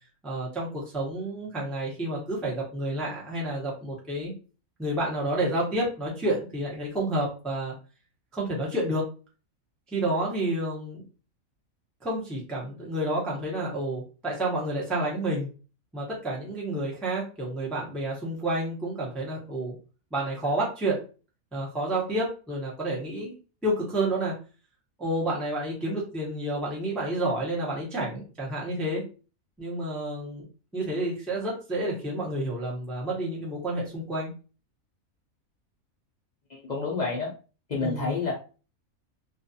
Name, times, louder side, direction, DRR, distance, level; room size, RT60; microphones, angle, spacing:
voice 1, 0.2-4.3 4.8-7.7 8.3-9.0 9.9-11.0 12.0-15.5 15.9-19.8 20.1-21.0 21.5-23.3 23.6-24.3 25.0-29.0 29.6-30.4 30.7-34.3 37.7-38.2, right 1 dB, ahead, -4 dB, 0.5 m, -29 dB
voice 2, 36.5-37.3 37.7-38.3, left 4 dB, 75° left, -3 dB, 0.4 m, -29 dB
2.4 x 2.3 x 2.6 m, 0.35 s
omnidirectional pair, 1.5 m